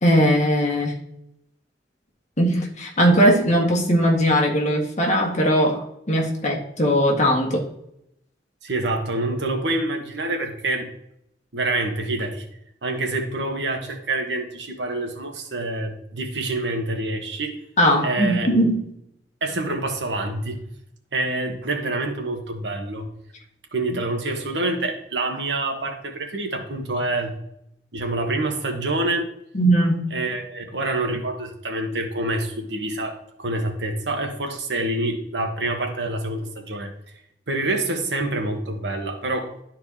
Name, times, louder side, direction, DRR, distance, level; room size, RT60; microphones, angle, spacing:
voice 1, 0.0-0.9 2.4-7.6 17.8-18.8 29.5-30.2, equal, 45° left, -1 dB, 1.7 m, -19 dB
voice 2, 8.6-10.9 11.5-12.4 12.8-17.6 18.0-18.5 19.4-20.6 21.1-23.1 23.7-27.4 27.9-29.3 30.1-36.9 37.5-39.5, right 2 dB, 75° right, 4 dB, 1.3 m, -26 dB
12.0 x 4.4 x 2.8 m, 0.76 s
head